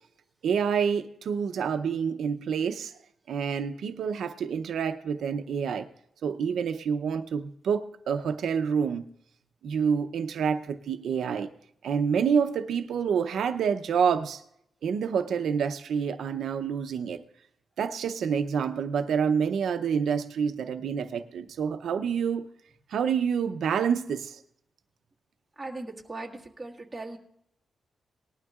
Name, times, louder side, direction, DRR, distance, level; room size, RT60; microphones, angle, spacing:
voice 1, 0.4-2.9 3.3-5.9 6.2-9.1 9.6-11.5 11.8-14.4 14.8-17.2 17.8-22.5 22.9-24.4, right 7 dB, 85° right, 8 dB, 0.6 m, -28 dB
voice 2, 25.6-27.2, right 2 dB, 10° right, -2 dB, 1.6 m, -39 dB
19.0 x 12.0 x 2.4 m, 0.73 s
wide cardioid pair, 145°, 0 cm